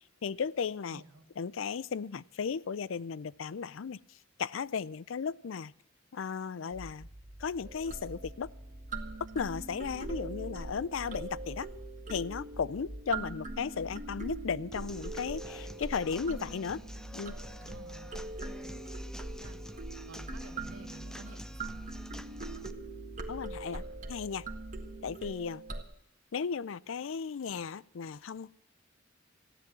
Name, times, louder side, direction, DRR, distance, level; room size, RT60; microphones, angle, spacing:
voice 1, 0.2-1.0 1.4-4.0 4.4-5.7 6.1-7.1 7.4-8.5 9.3-11.7 12.1-16.8 17.1-17.4 23.3-24.5 25.0-25.6 26.3-28.6, left 6 dB, 70° left, 21 dB, 0.4 m, -35 dB
voice 2, 0.9-1.2 17.6-18.1 18.5-18.8 19.4-19.6 20.1-21.7, right 2 dB, 85° right, 7 dB, 2.0 m, -52 dB
sound 1, 6.7-25.1, right 1 dB, 20° right, 2.4 m, -47 dB
sound 2, 7.6-25.8, right 3 dB, 40° right, 1.7 m, -43 dB
Human voice / Acoustic guitar / Drum, 14.7-22.7, equal, 5° left, 0.6 m, -49 dB
15.0 x 10.5 x 7.5 m, 0.77 s
head